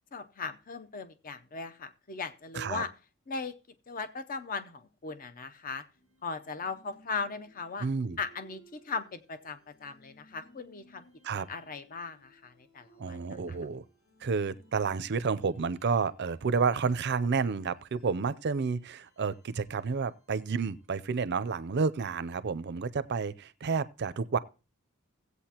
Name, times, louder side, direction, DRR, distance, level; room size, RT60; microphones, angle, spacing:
voice 1, 0.1-2.9 3.3-3.5 3.9-5.8 6.2-7.9 8.2-13.2 13.5-13.6, left 4 dB, 40° left, 0.7 m, -38 dB
sound 1, 5.9-21.0, right 3 dB, 75° left, 3.6 m, -61 dB
voice 2, 7.8-8.2 11.2-11.5 13.0-13.8 14.2-24.4, right 5 dB, 55° right, 0.5 m, -30 dB
16.5 x 8.2 x 2.9 m
head